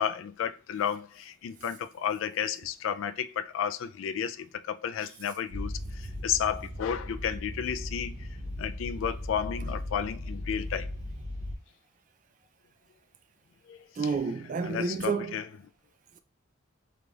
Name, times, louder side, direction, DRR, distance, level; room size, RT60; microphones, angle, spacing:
voice 1, 0.0-8.3 8.6-10.9 13.7-13.8 14.6-15.5, left 8 dB, 80° left, 0.3 m, -32 dB
sound 1, 5.5-11.6, left 1 dB, 75° right, 1.4 m, -37 dB
voice 2, 14.0-15.4, right 5 dB, 40° right, 0.3 m, -30 dB
3.8 x 3.3 x 2.3 m
head